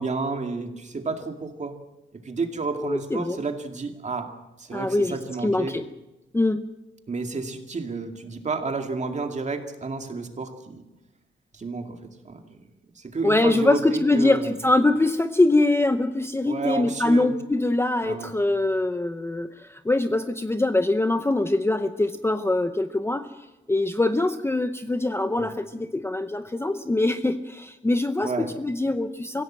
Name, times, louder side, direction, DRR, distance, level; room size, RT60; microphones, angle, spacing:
voice 1, 0.0-1.8 2.1-4.3 4.6-5.8 7.1-10.8 11.5-12.6 12.9-14.5 16.4-17.3 18.0-18.3 25.4-25.5 28.2-28.5, right 4 dB, 35° right, 5 dB, 2.2 m, -31 dB
voice 2, 2.8-3.4 4.7-5.2 5.4-5.8 6.3-6.6 13.2-23.3 23.7-29.4, left 2 dB, 10° left, 9 dB, 0.7 m, -23 dB
25.0 x 16.5 x 7.6 m, 1.0 s
wide cardioid pair, 175°, 21 cm